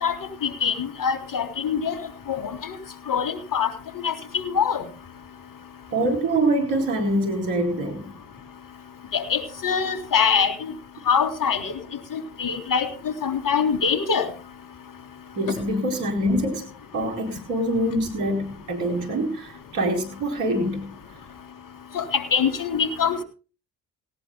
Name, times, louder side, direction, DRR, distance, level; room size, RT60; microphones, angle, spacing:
voice 1, 0.0-2.0 2.3-2.8 3.1-3.7 4.0-4.8 9.1-10.7 11.1-11.7 12.1-12.9 13.2-14.3 21.9-23.2, left 6 dB, 45° left, 8 dB, 3.6 m, -24 dB
voice 2, 5.9-8.1 15.4-16.7 16.9-20.9, right 1 dB, 80° right, 6 dB, 4.5 m, -25 dB
18.5 x 18.0 x 2.3 m, 0.35 s
hypercardioid pair, 50°, 47 cm